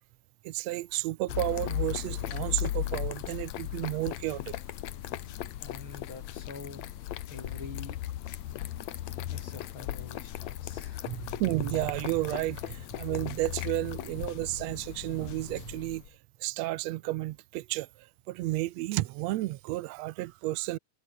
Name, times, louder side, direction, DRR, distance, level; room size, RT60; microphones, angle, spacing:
voice 1, 0.4-4.5 11.0-16.0 16.4-17.9 18.3-20.8, right 18 dB, 75° right, 1.6 m, -32 dB
sound 1, 1.3-16.1, left 13 dB, 70° left, 2.1 m, -37 dB
voice 2, 5.6-6.9 7.3-8.0 9.3-11.3, left 4 dB, 40° left, 4.1 m, -46 dB
omnidirectional pair, 3.6 m